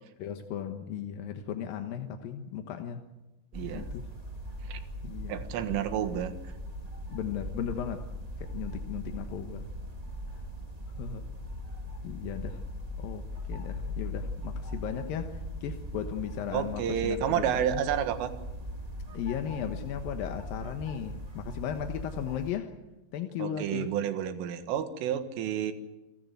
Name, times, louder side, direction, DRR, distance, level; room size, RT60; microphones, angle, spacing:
voice 1, 0.2-3.0 3.6-4.1 5.0-5.4 7.1-8.0 8.4-9.7 11.0-11.3 12.0-12.6 13.0-17.8 19.1-22.7 23.1-23.9, left 9 dB, 70° left, 2.3 m, -36 dB
sound 1, 3.5-22.5, equal, 30° right, 0.7 m, -39 dB
voice 2, 3.5-3.9 4.6-4.8 5.3-6.3 16.5-18.3 23.4-25.7, right 9 dB, 85° right, 4.1 m, -30 dB
29.0 x 15.5 x 9.4 m
omnidirectional pair, 5.6 m